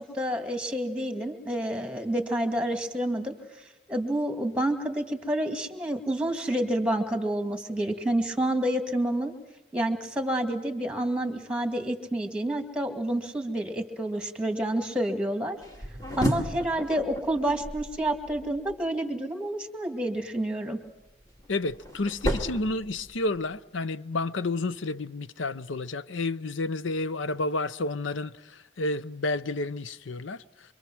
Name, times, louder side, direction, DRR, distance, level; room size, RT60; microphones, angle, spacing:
voice 1, 0.0-9.3 9.7-15.6 16.2-20.8, right 1 dB, 5° right, 2.2 m, -29 dB
sound 1, 15.6-18.8 21.0-23.5, equal, 20° left, 2.1 m, -33 dB
voice 2, 21.5-30.4, left 2 dB, 85° left, 0.7 m, -30 dB
26.0 x 24.0 x 6.2 m
head